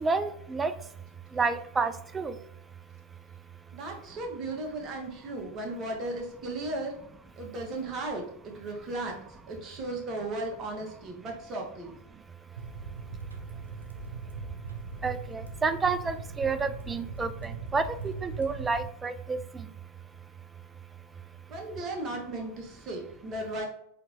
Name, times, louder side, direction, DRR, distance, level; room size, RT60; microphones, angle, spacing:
voice 1, 0.0-0.7 1.3-2.3 15.0-19.4, right 4 dB, 15° right, 11 dB, 0.3 m, -29 dB
voice 2, 3.7-6.9 7.4-12.0 21.5-23.6, right 2 dB, 30° right, 1 dB, 1.1 m, -36 dB
sound 1, 12.5-18.9, right 4 dB, 75° right, 0.6 m, -40 dB
4.1 x 3.0 x 2.8 m, 0.72 s
figure-of-eight pair, 90°, 0 cm